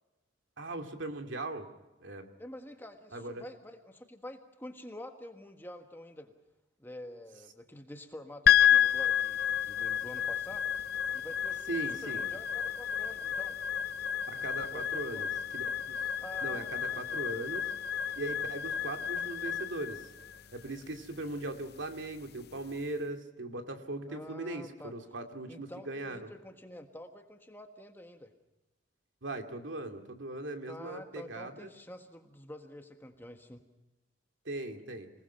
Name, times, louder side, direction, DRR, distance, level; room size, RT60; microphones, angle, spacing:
voice 1, 0.6-1.7 2.0-2.3 3.1-3.4 11.7-12.3 14.3-15.3 15.5-16.0 16.4-17.7 18.2-20.1 20.5-26.3 29.2-31.7 34.4-35.1, right 2 dB, 85° right, 5 dB, 2.4 m, -39 dB
voice 2, 2.4-6.3 6.8-10.7 11.1-11.7 12.0-13.6 14.7-15.2 16.2-17.4 24.1-24.9 25.5-28.3 30.7-33.6, left 1 dB, 10° left, 5 dB, 1.5 m, -48 dB
sound 1, 8.5-22.8, left 9 dB, 55° left, 0.7 m, -31 dB
26.5 x 19.0 x 5.7 m, 1.0 s
head